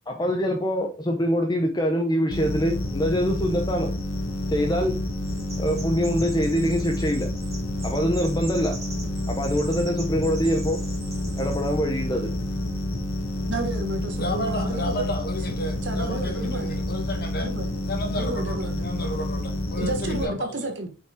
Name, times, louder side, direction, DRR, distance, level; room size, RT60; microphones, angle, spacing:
voice 1, 0.1-3.9 4.5-5.0 5.6-7.3 7.8-8.8 9.3-10.8 11.4-12.3, equal, 20° left, 0.8 m, -24 dB
sound 1, 2.3-20.2, left 1 dB, 90° left, 1.7 m, -29 dB
Chirp tweet, 5.2-11.8, right 2 dB, 15° right, 2.3 m, -43 dB
voice 2, 13.5-15.1 15.8-16.8 17.4-17.8 18.1-18.9 19.8-20.9, right 1 dB, 55° right, 1.4 m, -31 dB
voice 3, 14.2-17.5 17.9-20.6, left 1 dB, 50° left, 1.8 m, -32 dB
6.0 x 5.7 x 3.7 m
head